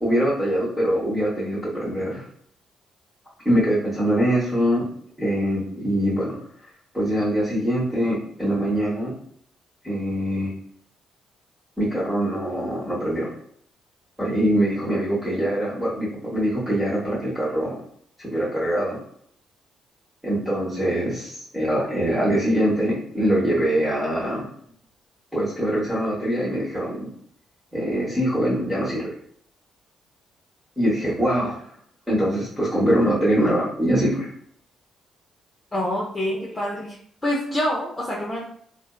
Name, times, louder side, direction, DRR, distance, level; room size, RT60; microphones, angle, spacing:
voice 1, 0.0-2.2 3.4-4.8 5.2-6.4 6.9-9.1 9.8-10.5 11.8-13.3 14.2-17.7 18.2-19.0 20.2-24.5 25.3-27.1 27.7-29.1 30.8-31.7 32.1-34.3, equal, 10° right, -9 dB, 1.1 m, -23 dB
voice 2, 35.7-37.0 37.2-38.4, left 1 dB, 20° left, -5 dB, 0.6 m, -26 dB
2.6 x 2.1 x 2.3 m, 0.63 s
supercardioid pair, 60°, 0 cm